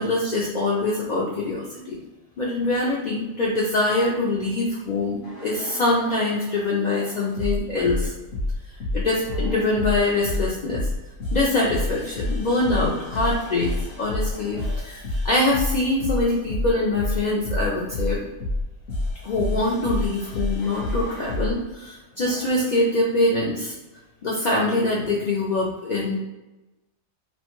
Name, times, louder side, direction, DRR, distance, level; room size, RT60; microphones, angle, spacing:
voice 1, 0.0-2.0 2.4-8.1 8.9-10.9 11.3-18.2 19.2-23.7 24.2-26.2, left 2 dB, 75° left, -5 dB, 0.4 m, -24 dB
sound 1, 5.2-6.2 6.9-21.6 22.3-22.6, left 1 dB, 55° left, 0.7 m, -29 dB
3.0 x 2.1 x 2.9 m, 1.1 s
omnidirectional pair, 1.3 m